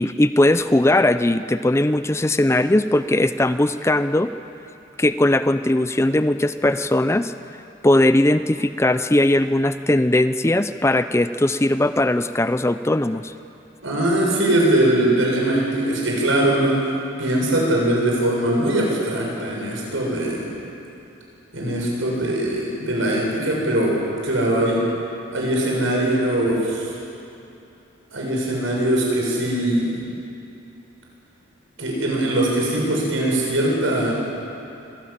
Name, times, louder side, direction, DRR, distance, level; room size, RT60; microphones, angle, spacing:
voice 1, 0.0-4.3 5.0-7.3 7.8-13.3, left 1 dB, 15° left, 11 dB, 0.5 m, -19 dB
voice 2, 13.8-16.8 17.2-20.5 21.5-24.8 25.3-26.9 28.1-29.9 31.8-34.1, right 1 dB, 85° right, -2 dB, 7.2 m, -21 dB
25.0 x 17.5 x 8.8 m, 2.8 s
head